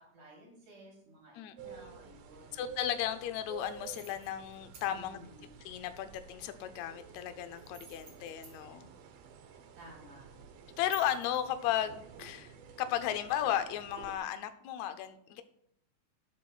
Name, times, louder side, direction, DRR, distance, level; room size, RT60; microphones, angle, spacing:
voice 1, 0.1-2.8 4.8-5.5 9.8-10.3, right 1 dB, 90° right, -3 dB, 4.9 m, -54 dB
voice 2, 1.4-2.0 2.5-5.2 5.7-8.9 10.8-12.5 12.8-15.4, left 11 dB, 75° left, 10 dB, 1.8 m, -35 dB
sound 1, 1.6-14.2, right 7 dB, 70° right, 1.6 m, -51 dB
sound 2, 3.6-4.9 7.5-8.6 10.8-11.4, right 7 dB, 50° right, 2.9 m, -52 dB
18.0 x 7.5 x 2.4 m, 0.72 s
omnidirectional pair, 3.5 m